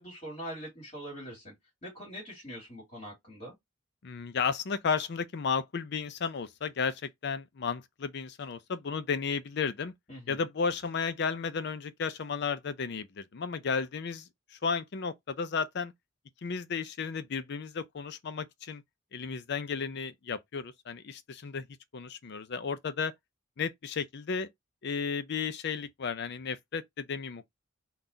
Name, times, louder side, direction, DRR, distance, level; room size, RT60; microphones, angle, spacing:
voice 1, 0.0-1.5 1.8-3.5 10.1-10.4, equal, 35° left, 2.1 m, -43 dB
voice 2, 4.0-9.9 10.3-15.9 16.4-18.8 19.1-21.7 21.9-23.1 23.6-24.5 24.8-27.4, left 5 dB, 55° left, 0.5 m, -33 dB
3.9 x 2.3 x 3.9 m
head